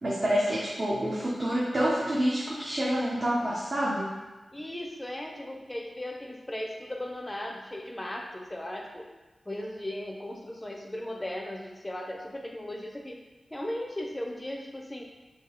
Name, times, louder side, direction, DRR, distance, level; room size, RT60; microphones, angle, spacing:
voice 1, 0.0-4.2, equal, 40° right, -6 dB, 0.8 m, -27 dB
voice 2, 4.5-9.1 9.5-13.2 13.5-15.0, left 1 dB, 15° left, 1 dB, 0.6 m, -37 dB
3.6 x 2.7 x 4.4 m, 1.2 s
wide cardioid pair, 90°, 0 cm